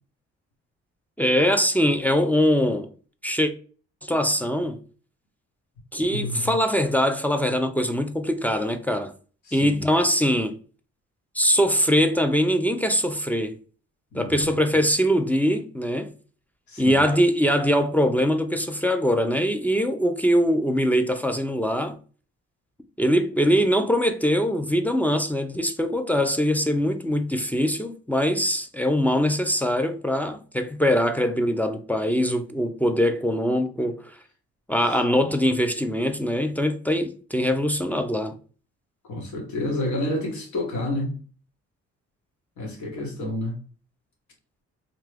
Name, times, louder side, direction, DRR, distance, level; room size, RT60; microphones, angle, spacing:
voice 1, 1.2-2.9 3.2-3.5 4.0-4.8 5.9-9.1 9.5-10.6 11.3-13.6 14.1-16.1 16.8-22.0 23.0-34.2 34.7-38.4, equal, 5° left, 0.3 m, -22 dB
voice 2, 6.1-6.5 9.5-9.8 14.1-14.7 16.7-17.0 39.1-41.1 42.6-43.5, left 1 dB, 80° left, 1.3 m, -29 dB
2.9 x 2.3 x 3.2 m
cardioid pair, 85°, 29 cm